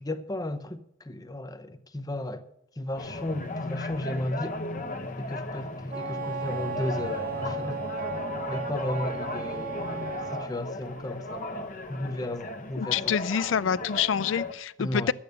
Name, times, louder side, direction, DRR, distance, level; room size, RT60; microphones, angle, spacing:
voice 1, 0.0-2.5 2.8-4.6 5.2-7.8 8.5-13.2 14.8-15.1, left 1 dB, 20° left, 0.7 m, -34 dB
sound 1, 3.0-14.5, left 2 dB, 40° left, 1.0 m, -36 dB
Wind instrument woodwind instrument, 5.9-10.5, right 5 dB, 45° right, 0.8 m, -35 dB
voice 2, 12.8-15.1, left 7 dB, 65° left, 0.4 m, -27 dB
12.0 x 8.7 x 6.7 m
head